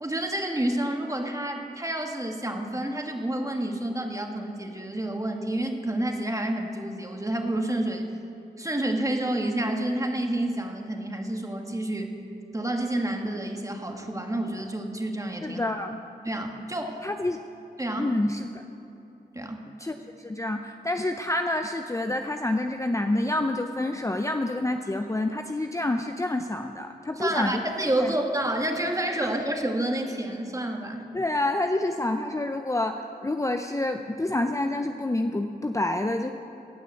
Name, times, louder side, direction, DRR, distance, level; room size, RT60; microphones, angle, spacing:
voice 1, 0.0-8.0 8.6-12.2 12.5-15.6 16.2-17.0 17.8-18.1 19.3-19.7 27.2-31.0, right 1 dB, 20° right, 3 dB, 1.7 m, -29 dB
voice 2, 15.4-16.0 17.0-17.4 18.0-18.6 19.8-27.6 28.0-28.1 29.2-29.3 31.1-36.3, left 2 dB, 15° left, 6 dB, 0.6 m, -28 dB
16.5 x 6.2 x 8.2 m, 3.0 s
cardioid pair, 50°, 18 cm